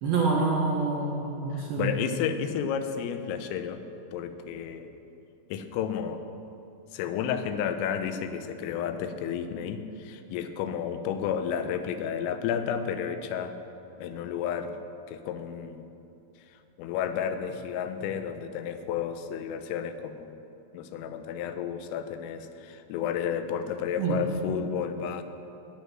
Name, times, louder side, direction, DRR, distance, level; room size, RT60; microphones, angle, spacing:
voice 1, 0.0-1.9 24.0-24.2, right 4 dB, 70° right, -2 dB, 2.3 m, -26 dB
voice 2, 1.5-3.8 4.1-4.9 5.5-6.2 6.9-13.6 14.0-14.8 15.1-15.8 16.8-20.4 20.7-25.2, left 8 dB, 90° left, 9 dB, 3.5 m, -32 dB
18.0 x 8.3 x 6.1 m, 2.9 s
omnidirectional pair, 5.8 m